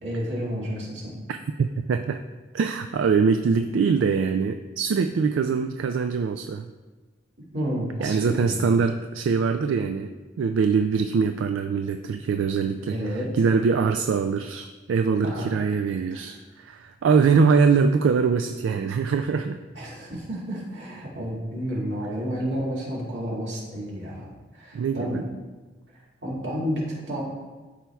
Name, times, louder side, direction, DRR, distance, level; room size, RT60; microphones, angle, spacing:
voice 1, 0.0-1.1 7.5-8.7 12.9-13.3 15.2-15.6 16.1-16.3 19.7-25.2 26.2-27.2, equal, 65° right, -6 dB, 2.2 m, -31 dB
voice 2, 1.3-2.2 2.5-6.7 8.0-13.0 13.4-19.6 24.7-25.2, right 5 dB, 85° right, 7 dB, 0.3 m, -23 dB
12.5 x 4.5 x 2.3 m, 1.3 s
head